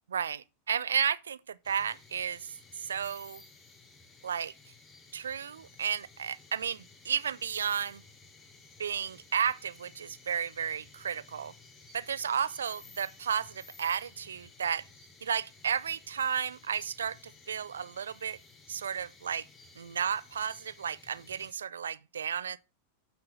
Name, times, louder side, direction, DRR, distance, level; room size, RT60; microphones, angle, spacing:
voice 1, 0.1-2.5 2.8-3.4 4.2-4.5 5.1-8.0 8.8-11.5 11.9-14.8 15.2-17.2 17.5-18.4 18.7-19.5 19.8-22.6, right 7 dB, 70° right, 0.4 m, -33 dB
sound 1, 1.6-21.5, left 4 dB, 25° left, 2.7 m, -56 dB
9.3 x 4.3 x 6.5 m
figure-of-eight pair, 90°, 0 cm